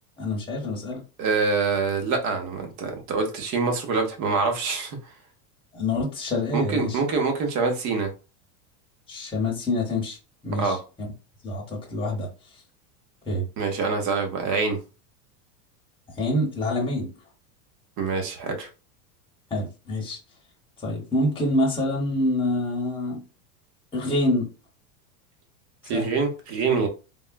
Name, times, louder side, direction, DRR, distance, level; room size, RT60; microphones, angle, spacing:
voice 1, 0.2-1.0 5.7-7.0 9.1-10.2 10.4-10.8 11.4-12.3 13.3-13.4 16.2-17.1 19.5-20.2 20.8-23.2 23.9-24.5 25.9-26.1, left 1 dB, 10° left, -2 dB, 1.0 m, -26 dB
voice 2, 1.2-5.0 6.5-8.1 10.6-10.8 13.6-14.8 18.0-18.7 25.8-26.9, right 4 dB, 40° right, 4 dB, 0.9 m, -25 dB
3.5 x 2.2 x 2.5 m, 0.31 s
supercardioid pair, 135°, 45 cm